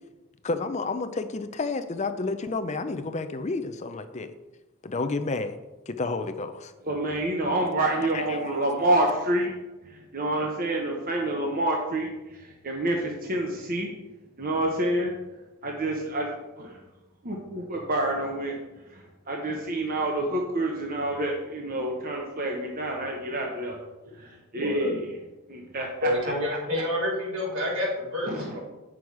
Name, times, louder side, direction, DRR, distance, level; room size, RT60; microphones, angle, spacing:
voice 1, 0.4-4.3 4.8-5.6 5.9-6.7 8.1-8.4, left 3 dB, 30° left, 9 dB, 0.5 m, -30 dB
voice 2, 6.8-9.5 9.8-13.9 14.4-15.1 15.6-16.8 17.2-18.6 18.9-23.8 24.2-25.1 25.5-26.1 28.3-28.6, right 1 dB, 40° right, 0 dB, 1.0 m, -28 dB
voice 3, 24.5-25.0 26.0-28.6, left 1 dB, 75° right, -4 dB, 3.2 m, -28 dB
8.8 x 6.2 x 4.7 m, 1.1 s
head